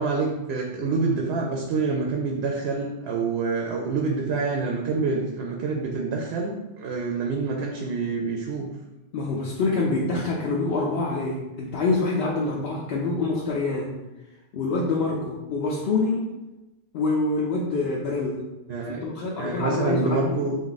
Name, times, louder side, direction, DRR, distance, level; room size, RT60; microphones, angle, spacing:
voice 1, 0.0-8.7 18.7-19.0 19.4-20.6, right 4 dB, 80° right, 0 dB, 0.8 m, -27 dB
voice 2, 9.1-14.0 14.5-16.3 16.9-18.4 18.9-20.3, left 3 dB, 75° left, -4 dB, 0.8 m, -26 dB
3.6 x 2.5 x 3.9 m, 1.0 s
omnidirectional pair, 1.1 m